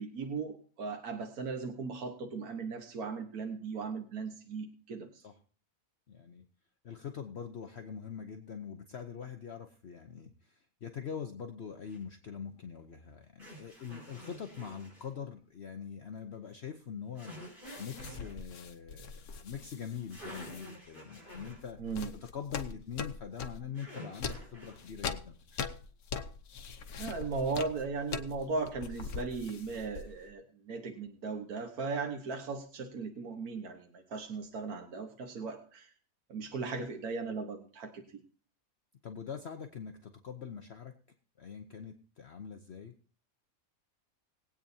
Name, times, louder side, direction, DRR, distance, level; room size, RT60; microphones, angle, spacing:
voice 1, 0.0-5.2 21.8-22.1 27.0-35.9 36.3-38.0, right 4 dB, 90° right, 4 dB, 1.7 m, -37 dB
voice 2, 6.1-6.4 6.8-22.0 22.3-25.8 39.0-40.9 41.4-42.9, left 7 dB, 50° left, 5 dB, 1.0 m, -43 dB
sound 1, 11.9-12.0 13.4-15.1 17.1-18.3 19.8-19.9 20.1-21.6 23.7-24.9, equal, 35° right, 5.2 m, -49 dB
sound 2, 17.7-20.7 21.3-23.7 24.1-30.3, left 5 dB, 90° left, 1.5 m, -42 dB
21.5 x 8.8 x 2.7 m, 0.42 s
omnidirectional pair, 1.5 m